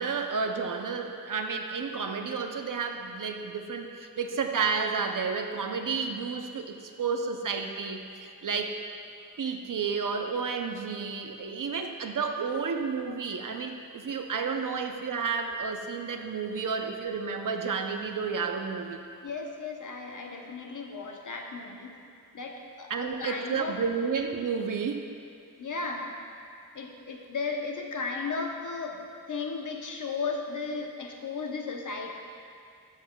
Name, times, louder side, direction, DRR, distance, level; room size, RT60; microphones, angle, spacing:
voice 1, 0.0-8.8 9.4-19.0 22.9-25.1, right 5 dB, 65° right, 5 dB, 0.6 m, -31 dB
voice 2, 19.2-22.0 22.3-23.8 25.6-26.1 26.7-32.1, left 4 dB, 60° left, 1 dB, 0.9 m, -35 dB
13.0 x 7.3 x 2.3 m, 2.4 s
wide cardioid pair, 95°, 35 cm